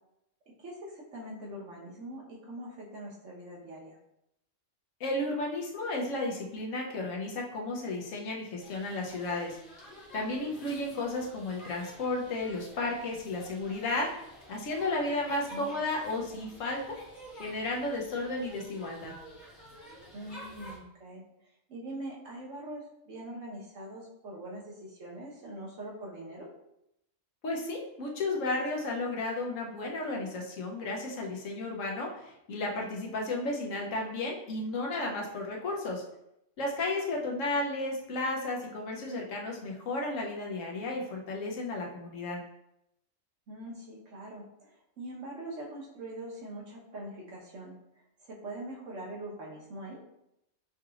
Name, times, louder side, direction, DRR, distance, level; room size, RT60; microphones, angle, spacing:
voice 1, 0.6-4.0 15.5-15.7 20.1-21.2 21.7-26.5 43.5-47.7 48.2-50.0, right 1 dB, 70° right, -4 dB, 1.5 m, -43 dB
voice 2, 5.0-9.6 10.1-14.1 14.5-17.0 17.4-19.1 27.4-36.0 36.6-42.4, left 2 dB, 75° left, -1 dB, 1.2 m, -33 dB
sound 1, 8.6-20.8, equal, 40° left, 1.3 m, -50 dB
5.8 x 3.0 x 2.4 m, 0.81 s
omnidirectional pair, 1.3 m